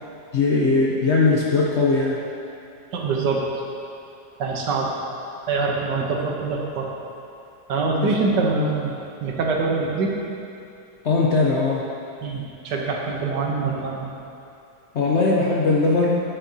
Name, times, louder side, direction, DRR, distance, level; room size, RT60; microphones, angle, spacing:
voice 1, 0.3-2.2 8.0-8.2 8.5-8.7 11.0-11.8 14.9-16.2, left 3 dB, 60° left, -3 dB, 0.7 m, -20 dB
voice 2, 2.9-3.4 4.4-4.9 5.5-6.9 7.7-8.9 9.2-10.1 12.2-14.1, right 4 dB, 80° right, -1 dB, 1.6 m, -24 dB
10.0 x 7.7 x 2.8 m, 2.6 s
omnidirectional pair, 1.9 m